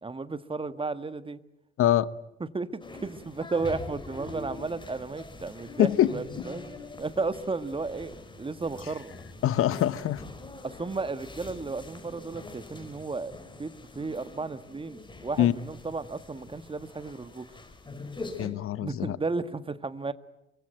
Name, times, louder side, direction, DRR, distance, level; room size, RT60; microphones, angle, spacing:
voice 1, 0.0-1.4 2.4-6.6 7.0-9.1 10.6-17.5 18.8-20.1, right 3 dB, 15° right, 13 dB, 1.5 m, -34 dB
sound 1, 2.8-18.5, left 2 dB, 15° left, 5.4 m, -44 dB
voice 2, 5.8-6.1 9.4-10.2 15.4-15.5 18.4-19.2, left 12 dB, 40° left, 18 dB, 1.1 m, -23 dB
24.0 x 24.0 x 9.2 m, 0.90 s
figure-of-eight pair, 60°, 32 cm